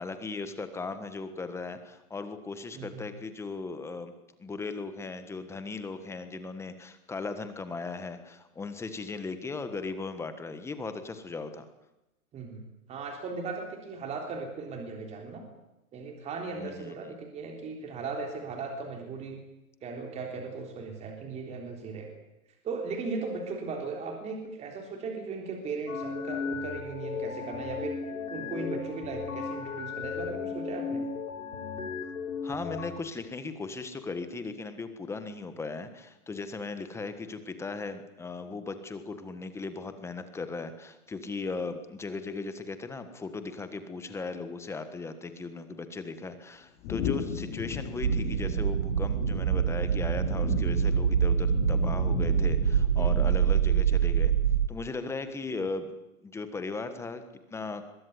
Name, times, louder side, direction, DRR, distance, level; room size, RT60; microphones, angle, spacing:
voice 1, 0.0-4.1 4.4-11.7 16.5-17.1 32.4-54.3 54.7-57.2 57.5-57.8, left 3 dB, 5° left, 10 dB, 1.4 m, -37 dB
voice 2, 12.9-15.4 15.9-19.4 19.8-22.1 22.6-28.0 28.3-31.0 53.0-53.4, right 4 dB, 15° right, 3 dB, 3.6 m, -37 dB
sound 1, 25.9-32.9, left 5 dB, 70° left, 6.1 m, -35 dB
sound 2, 46.8-53.6, left 7 dB, 30° left, 6.8 m, -36 dB
sound 3, 48.0-54.7, right 8 dB, 70° right, 1.4 m, -25 dB
22.5 x 22.0 x 9.6 m, 0.94 s
hypercardioid pair, 160°, 42 cm